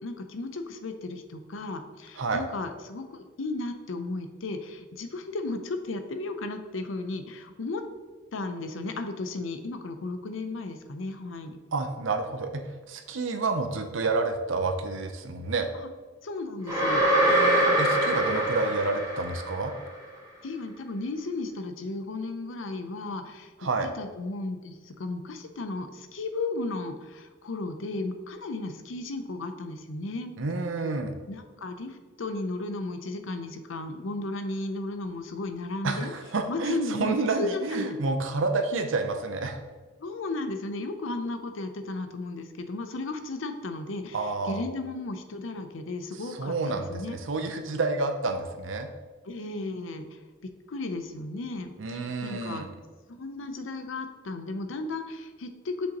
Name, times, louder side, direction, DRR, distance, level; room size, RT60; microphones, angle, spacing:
voice 1, 0.0-7.8 8.3-11.6 15.7-15.9 16.2-17.0 20.4-23.5 23.8-30.3 31.3-36.1 36.5-37.9 40.0-47.2 49.3-50.1 50.4-52.7 53.1-56.0, left 2 dB, 70° left, 8 dB, 0.6 m, -34 dB
voice 2, 11.7-12.6 12.9-15.7 17.3-19.7 23.6-23.9 30.4-31.1 35.8-39.6 44.1-44.6 46.2-48.9 51.8-52.7, right 3 dB, 65° right, 6 dB, 0.7 m, -29 dB
sound 1, 16.7-19.8, right 1 dB, 15° right, 1.7 m, -24 dB
6.5 x 5.3 x 2.9 m, 1.3 s
head